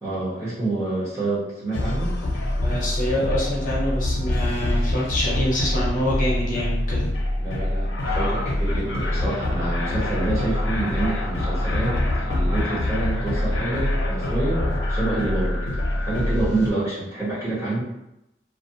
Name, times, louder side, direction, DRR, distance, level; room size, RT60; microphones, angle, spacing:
voice 1, 0.0-2.2 7.4-17.8, right 2 dB, 15° right, -9 dB, 0.9 m, -28 dB
sound 1, 1.7-16.7, left 1 dB, 90° left, 0.5 m, -25 dB
voice 2, 2.6-7.1, equal, 45° left, -6 dB, 0.7 m, -26 dB
2.4 x 2.1 x 2.6 m, 0.88 s
head